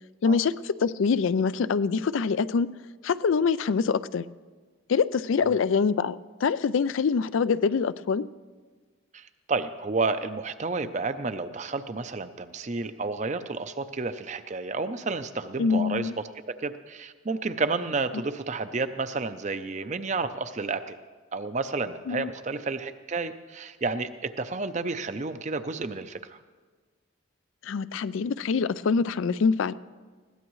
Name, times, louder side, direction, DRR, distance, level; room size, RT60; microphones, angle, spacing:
voice 1, 0.2-2.7 3.0-4.2 4.9-8.3 15.6-16.1 22.1-22.3 27.6-29.7, left 5 dB, 70° left, 15 dB, 0.4 m, -25 dB
voice 2, 9.1-16.1 16.5-21.0 21.3-26.4, right 3 dB, 35° right, 11 dB, 0.5 m, -31 dB
21.0 x 16.0 x 3.1 m, 1.4 s
head